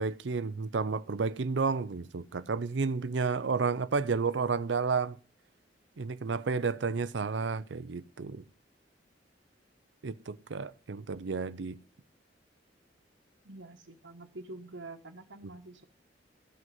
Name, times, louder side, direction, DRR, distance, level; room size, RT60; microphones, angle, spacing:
voice 1, 0.0-5.2 6.0-8.4 10.0-11.8, right 4 dB, 70° right, 0.6 m, -31 dB
voice 2, 13.4-15.8, right 2 dB, 90° right, 1.3 m, -46 dB
14.5 x 6.3 x 9.2 m
head